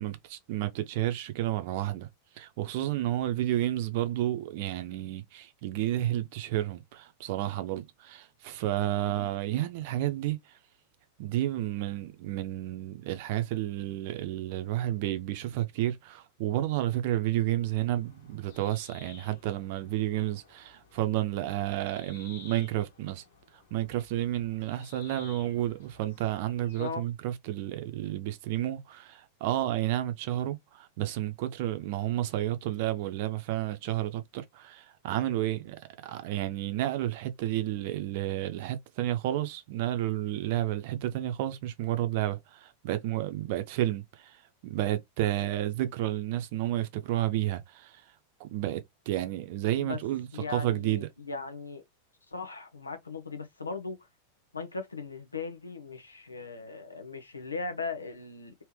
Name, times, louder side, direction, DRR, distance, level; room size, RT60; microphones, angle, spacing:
voice 1, 0.0-2.1 2.4-10.4 11.2-23.2 23.7-35.8 36.0-44.3 44.6-48.0 48.4-51.1, right 14 dB, 50° right, 0.7 m, -31 dB
sound 1, 17.6-26.9, left 5 dB, 60° left, 1.5 m, -55 dB
voice 2, 50.3-51.8 52.3-54.0 54.5-58.5, left 4 dB, 80° left, 0.8 m, -38 dB
3.4 x 2.8 x 3.2 m
figure-of-eight pair, 90°, 0 cm